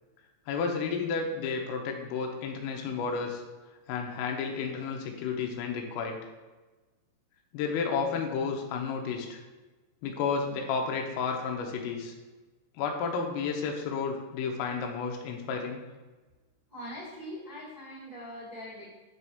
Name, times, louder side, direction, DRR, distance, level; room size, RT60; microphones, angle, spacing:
voice 1, 0.5-3.4 3.9-6.2 7.5-9.4 10.0-12.1 12.8-15.8, left 5 dB, 85° left, 2 dB, 3.5 m, -32 dB
voice 2, 16.7-18.9, equal, 20° right, -9 dB, 1.0 m, -42 dB
9.1 x 3.5 x 6.0 m, 1.2 s
omnidirectional pair, 6.0 m